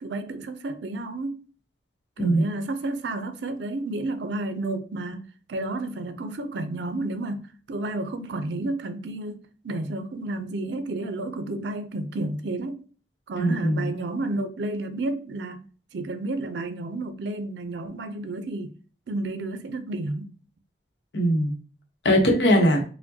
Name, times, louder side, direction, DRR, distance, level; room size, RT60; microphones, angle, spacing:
voice 1, 0.0-1.4 2.2-12.8 13.3-15.6 15.9-18.7 19.1-20.3, right 2 dB, 75° right, 0.4 m, -31 dB
voice 2, 13.4-13.9 21.1-21.5 22.0-22.8, equal, 80° left, 0.9 m, -20 dB
4.4 x 2.1 x 2.7 m
head